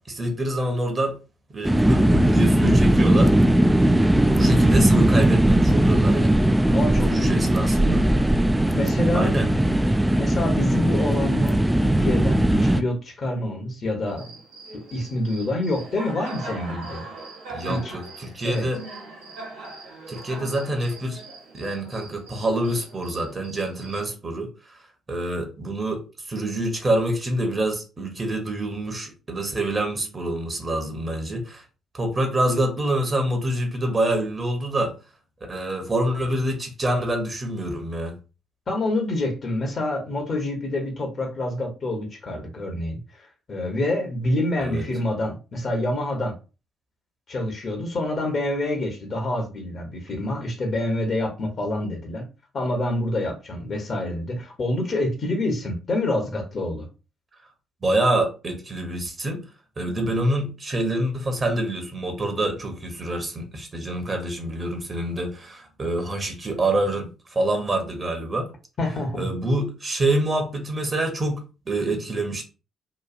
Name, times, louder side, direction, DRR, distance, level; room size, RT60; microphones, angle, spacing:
voice 1, 0.1-1.2 1.5-3.3 4.2-6.4 7.1-8.1 9.1-9.5 17.5-18.8 20.1-21.2 21.5-24.5 25.1-26.0 26.3-31.6 31.9-34.9 35.5-38.2 44.6-44.9 57.8-59.4 59.8-68.5 69.1-72.4, right 1 dB, 35° right, 0.9 m, -26 dB
sound 1, 1.6-12.8, right 1 dB, 10° right, 0.3 m, -19 dB
voice 2, 6.7-7.8 8.7-9.3 10.2-14.3 14.7-17.0 17.7-18.0 18.4-18.7 38.7-46.3 47.3-52.2 52.5-56.9 68.8-69.3, left 1 dB, 45° left, 0.9 m, -27 dB
Cricket, 14.1-24.1, right 2 dB, 75° right, 0.9 m, -40 dB
3.0 x 2.3 x 2.4 m
figure-of-eight pair, 45°, 0 cm